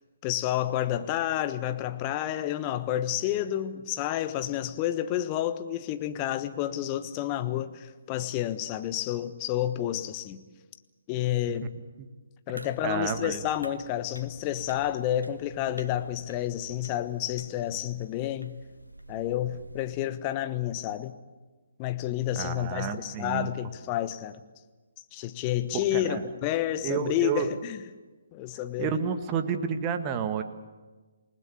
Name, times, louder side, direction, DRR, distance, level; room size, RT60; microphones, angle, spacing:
voice 1, 0.2-10.4 11.1-11.7 12.5-18.6 19.1-21.1 21.8-24.4 25.1-27.8 28.3-29.0, left 12 dB, 25° left, 1.2 m, -30 dB
voice 2, 12.5-13.4 22.4-23.5 25.7-26.3 26.8-27.5 28.8-30.4, right 7 dB, 20° right, 1.7 m, -30 dB
sound 1, 12.5-19.9, right 1 dB, 85° right, 1.6 m, -48 dB
28.0 x 19.5 x 8.4 m
figure-of-eight pair, 135°, 0 cm